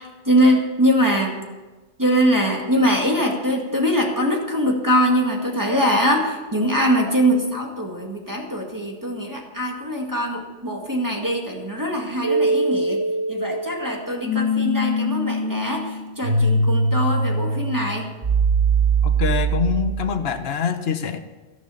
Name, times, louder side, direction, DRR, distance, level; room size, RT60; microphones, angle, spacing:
voice 1, 0.0-1.4 2.0-13.0 13.3-18.1, equal, 15° right, 0 dB, 1.9 m, -22 dB
sound 1, 12.2-20.1, right 2 dB, 90° right, 3.0 m, -22 dB
voice 2, 19.0-21.2, left 7 dB, 60° left, 8 dB, 1.2 m, -24 dB
13.5 x 11.5 x 7.0 m, 1.2 s
omnidirectional pair, 1.2 m